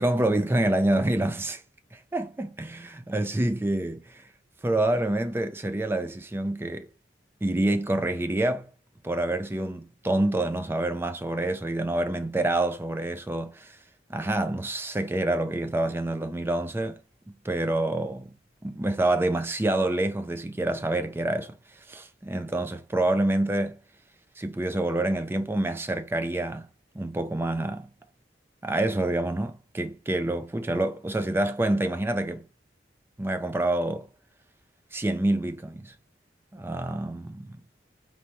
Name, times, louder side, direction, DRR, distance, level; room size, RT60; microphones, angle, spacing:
voice 1, 0.0-1.6 1.9-4.2 4.6-6.9 7.4-8.7 9.0-13.8 14.1-17.0 17.4-18.3 18.6-21.6 21.9-23.8 24.4-26.7 26.9-27.9 28.6-32.4 33.2-34.1 34.9-35.9 36.5-37.6, right 1 dB, 10° right, 0.3 m, -27 dB
4.0 x 3.4 x 2.9 m
head